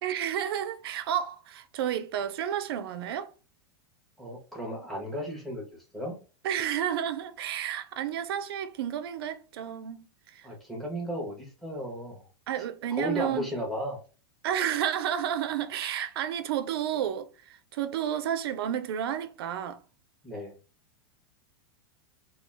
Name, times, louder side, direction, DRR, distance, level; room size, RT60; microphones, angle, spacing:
voice 1, 0.0-3.3 6.4-10.5 12.5-13.5 14.4-19.8, right 10 dB, 70° right, 0.4 m, -31 dB
voice 2, 4.2-5.6 5.9-6.2 10.4-12.2 12.9-14.0 20.2-20.5, equal, ahead, 0.6 m, -34 dB
2.2 x 2.2 x 3.2 m
supercardioid pair, 170°, 13 cm